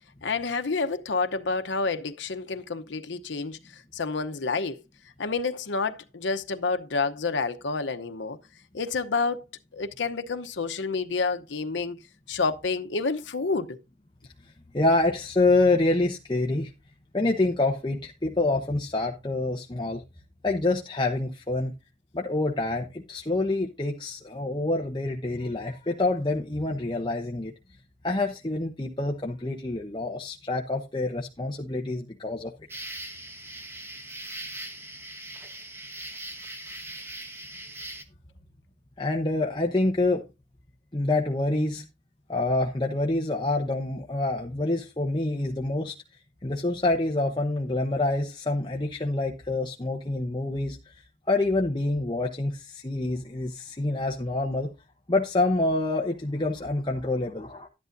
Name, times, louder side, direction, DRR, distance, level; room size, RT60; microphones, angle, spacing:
voice 1, 0.2-3.6 3.9-4.8 5.2-8.4 8.7-9.4 9.7-12.0 12.3-13.8, left 4 dB, 85° left, 0.8 m, -29 dB
voice 2, 14.7-16.7 17.1-20.0 20.4-21.7 22.1-27.5 28.0-32.5 39.0-40.2 40.9-41.9 42.3-45.9 46.4-54.7 55.1-57.7, left 2 dB, 25° left, 0.9 m, -27 dB
sound 1, 32.7-38.0, right 1 dB, 15° right, 1.1 m, -40 dB
12.5 x 11.0 x 2.6 m
head